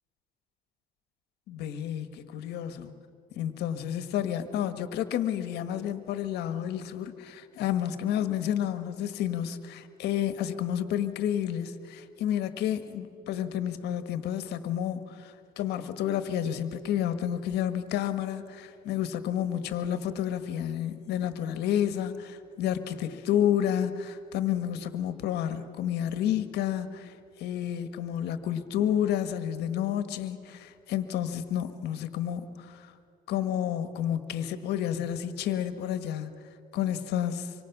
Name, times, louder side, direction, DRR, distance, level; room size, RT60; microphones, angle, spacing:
voice 1, 1.5-2.9 3.3-27.1 27.4-32.9 33.3-36.3 36.7-37.5, left 10 dB, 80° left, 10 dB, 1.5 m, -30 dB
25.5 x 24.0 x 6.0 m, 2.4 s
cardioid pair, 110°, 17 cm